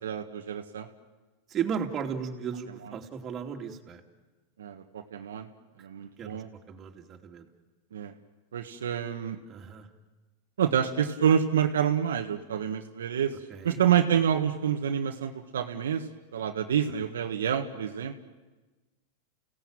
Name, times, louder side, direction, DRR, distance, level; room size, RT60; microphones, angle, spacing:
voice 1, 0.0-0.9 4.6-5.5 5.8-6.5 7.9-8.1 8.5-9.4 10.6-13.3 13.6-16.1 16.3-18.1, right 8 dB, 85° right, 4 dB, 1.6 m, -27 dB
voice 2, 1.5-4.0 5.8-5.9 6.2-7.5 9.5-9.9 13.5-13.8 16.9-17.0, right 7 dB, 30° right, 2 dB, 3.0 m, -35 dB
30.0 x 17.0 x 9.1 m, 1.2 s
hypercardioid pair, 115°, 0 cm